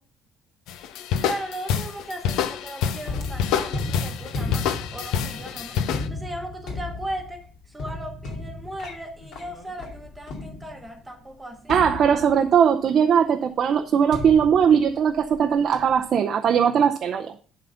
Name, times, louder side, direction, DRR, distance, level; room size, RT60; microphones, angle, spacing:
sound 1, 0.7-6.1, left 8 dB, 90° left, 0.7 m, -27 dB
voice 1, 1.2-5.8 6.1-11.7, right 1 dB, 5° right, 3 dB, 1.0 m, -37 dB
sound 2, 3.0-11.0 11.7-12.7 14.1-15.4 15.7-16.1, left 2 dB, 65° left, 2.4 m, -34 dB
voice 2, 11.7-17.4, right 7 dB, 40° right, 5 dB, 0.5 m, -20 dB
11.0 x 3.9 x 5.6 m, 0.42 s
cardioid pair, 170°, 0 cm